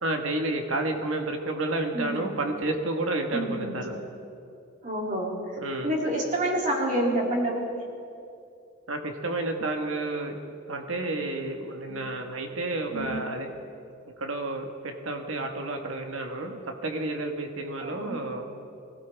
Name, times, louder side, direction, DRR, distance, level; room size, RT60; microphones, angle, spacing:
voice 1, 0.0-4.0 5.6-6.0 8.9-10.4 10.7-13.5 14.2-18.5, right 2 dB, 80° right, 4 dB, 1.5 m, -30 dB
voice 2, 1.9-2.3 3.3-3.7 4.8-5.3 5.8-7.8 11.9-12.1 12.9-13.2 17.8-18.2, right 1 dB, 40° right, -2 dB, 2.9 m, -28 dB
24.0 x 17.0 x 3.5 m, 2.6 s
head